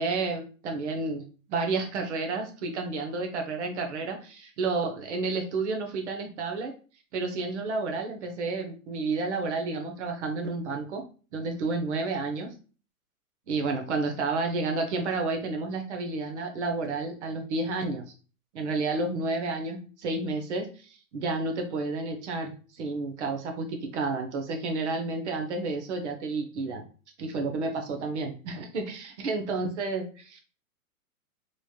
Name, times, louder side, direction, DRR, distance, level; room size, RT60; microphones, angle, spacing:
voice 1, 0.0-6.7 7.1-11.0 11.3-12.5 13.5-18.0 18.5-26.9 27.2-30.4, right 3 dB, 50° right, 4 dB, 0.8 m, -31 dB
3.1 x 2.9 x 2.3 m, 0.37 s
hypercardioid pair, 170°, 45 cm